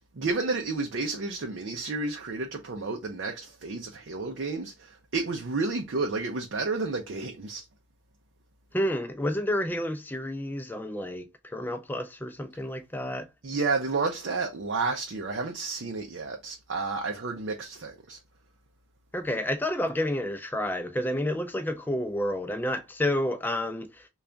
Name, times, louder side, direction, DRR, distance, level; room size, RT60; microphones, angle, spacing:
voice 1, 0.1-7.6 13.4-18.2, right 3 dB, 55° right, 0.5 m, -31 dB
voice 2, 8.7-13.3 19.1-24.1, left 1 dB, 10° left, 0.4 m, -30 dB
3.3 x 2.3 x 3.7 m
head